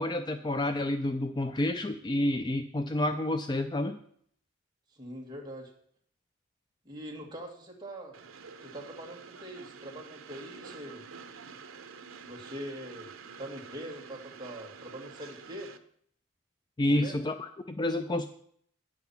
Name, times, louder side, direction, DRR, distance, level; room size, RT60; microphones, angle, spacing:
voice 1, 0.0-4.0 16.8-18.3, left 1 dB, 20° left, 8 dB, 0.4 m, -29 dB
voice 2, 4.9-5.7 6.9-8.1 8.6-11.0 12.3-13.1 13.4-15.7 16.8-17.2, equal, 20° right, 0 dB, 1.9 m, -43 dB
Train, 8.1-15.8, right 5 dB, 80° right, 0.8 m, -48 dB
9.9 x 6.0 x 7.1 m, 0.63 s
head